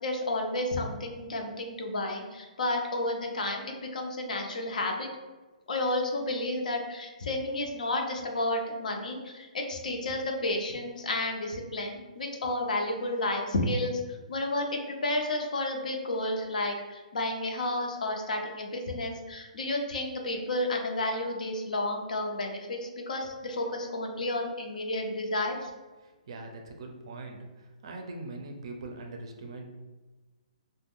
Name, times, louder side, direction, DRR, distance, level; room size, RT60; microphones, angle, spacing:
voice 1, 0.0-5.1 5.7-14.0 14.3-25.7, left 2 dB, 75° left, 2 dB, 0.6 m, -31 dB
voice 2, 26.3-27.5 27.8-29.7, right 2 dB, 40° right, 3 dB, 0.4 m, -41 dB
2.4 x 2.1 x 3.5 m, 1.2 s
hypercardioid pair, 175°, 4 cm